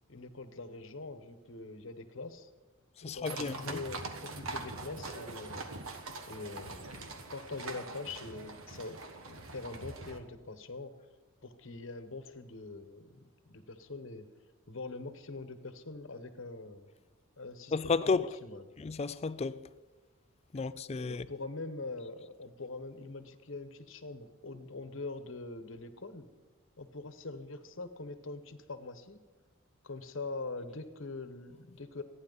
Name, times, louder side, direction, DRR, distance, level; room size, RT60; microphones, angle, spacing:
voice 1, 0.1-2.5 3.0-5.7 6.2-9.0 9.3-10.9 11.4-14.3 14.7-16.9 17.4-18.1 18.4-18.6 21.1-26.3 26.8-29.2 29.8-32.0, left 3 dB, 65° left, 1.1 m, -43 dB
voice 2, 3.0-3.8 17.7-18.3 18.8-19.7 20.5-21.3, left 4 dB, 30° left, 0.3 m, -32 dB
sound 1, 3.3-10.2, right 3 dB, 80° right, 1.5 m, -43 dB
27.0 x 10.0 x 4.0 m
head